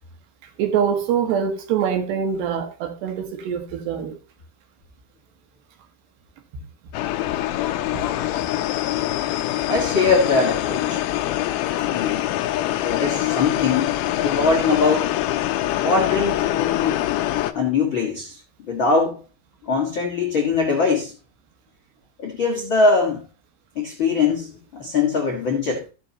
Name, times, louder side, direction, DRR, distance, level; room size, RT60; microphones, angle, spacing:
voice 1, 0.6-4.1 7.9-8.0, right 7 dB, 75° right, 3.6 m, -24 dB
sound 1, 6.9-17.5, left 14 dB, 85° left, 2.1 m, -24 dB
voice 2, 9.7-11.0 11.9-12.3 12.7-15.1 15.8-17.0 17.5-18.4 18.7-19.2 19.6-21.1 22.2-23.2 23.7-25.8, left 4 dB, 55° left, 1.3 m, -22 dB
15.5 x 6.7 x 2.9 m
omnidirectional pair, 5.1 m